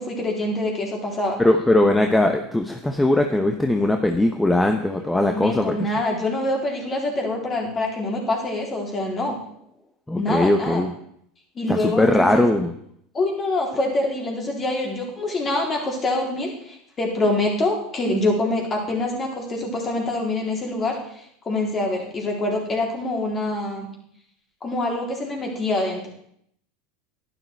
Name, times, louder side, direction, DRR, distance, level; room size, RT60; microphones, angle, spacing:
voice 1, 0.0-1.4 5.1-9.4 10.2-10.8 11.6-12.4 13.1-23.9 24.6-26.1, left 2 dB, 30° left, 0 dB, 3.9 m, -25 dB
voice 2, 1.4-5.7 10.1-10.9 11.7-12.8, left 1 dB, 10° left, 5 dB, 1.0 m, -20 dB
11.0 x 11.0 x 4.7 m, 0.70 s
supercardioid pair, 105°, 0 cm